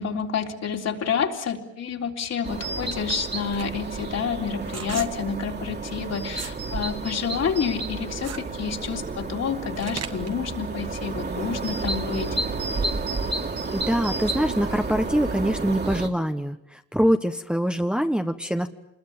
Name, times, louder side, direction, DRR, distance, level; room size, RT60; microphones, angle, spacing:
voice 1, 0.0-12.4, left 6 dB, 60° left, 1 dB, 3.6 m, -29 dB
sound 1, 2.4-16.1, right 3 dB, 35° right, 2.8 m, -31 dB
sound 2, 3.5-6.6 7.0-10.4, right 7 dB, 55° right, 2.0 m, -38 dB
voice 2, 13.7-18.7, equal, 5° right, 6 dB, 1.3 m, -24 dB
26.5 x 21.0 x 8.8 m, 0.82 s
cardioid pair, 90°, 30 cm